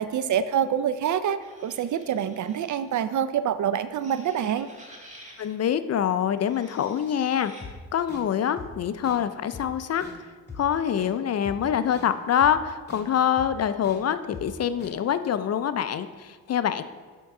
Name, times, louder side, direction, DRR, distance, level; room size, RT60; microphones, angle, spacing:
voice 1, 0.0-4.7, right 9 dB, 50° right, 13 dB, 0.5 m, -26 dB
sound 1, 1.4-3.0 3.9-5.6 6.4-7.7, equal, 20° right, 1.7 m, -50 dB
voice 2, 5.4-10.1 10.6-16.8, left 9 dB, 40° left, 12 dB, 0.4 m, -25 dB
sound 2, 7.6-7.7 8.1-8.2 8.6-8.7 9.0-9.2 9.5-9.7 10.0-10.1 10.5-10.6 11.0-11.1 11.4-11.6 11.9-12.1 12.4-12.5 12.9-13.0 13.4-13.5 13.8-14.0 14.3-14.5 14.8-14.9, left 4 dB, 25° left, 2.1 m, -41 dB
7.4 x 3.7 x 5.4 m, 1.5 s
cardioid pair, 75°, 39 cm